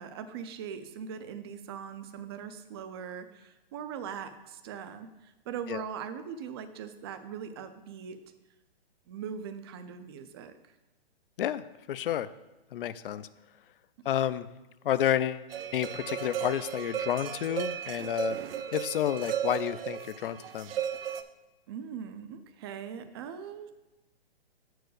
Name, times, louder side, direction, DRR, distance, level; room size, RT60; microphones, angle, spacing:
voice 1, 0.0-8.2 9.1-10.7 21.7-23.7, right 7 dB, 25° right, 9 dB, 0.4 m, -41 dB
voice 2, 11.4-12.3 12.7-13.3 14.1-14.5 14.8-15.5 15.7-18.4 18.7-20.7, left 11 dB, 60° left, 15 dB, 0.5 m, -30 dB
sound 1, 15.5-21.2, right 9 dB, 65° right, 0.7 m, -35 dB
6.0 x 4.7 x 6.4 m, 1.1 s
hypercardioid pair, 140°, 31 cm